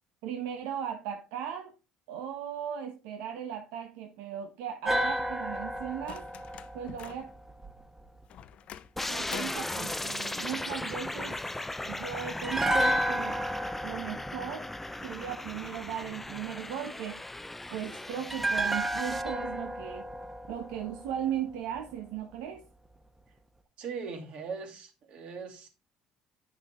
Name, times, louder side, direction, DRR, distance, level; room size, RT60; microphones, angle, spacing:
voice 1, 0.2-1.7 2.1-6.3 6.7-7.3 9.1-11.4 11.8-13.5 13.8-14.7 15.0-17.2 17.7-20.1 20.5-22.6, right 9 dB, 85° right, 1.0 m, -37 dB
sound 1, 4.8-8.0 12.4-15.6 18.3-21.5 21.8-21.9, right 1 dB, 15° right, 1.0 m, -32 dB
sound 2, 6.0-7.3 8.3-9.7 11.3-11.4, left 10 dB, 55° left, 0.6 m, -45 dB
sound 3, 9.0-19.2, left 2 dB, 10° left, 0.4 m, -38 dB
voice 2, 23.8-25.7, right 5 dB, 60° right, 2.4 m, -39 dB
9.0 x 6.2 x 3.6 m
supercardioid pair, 95°, 2 cm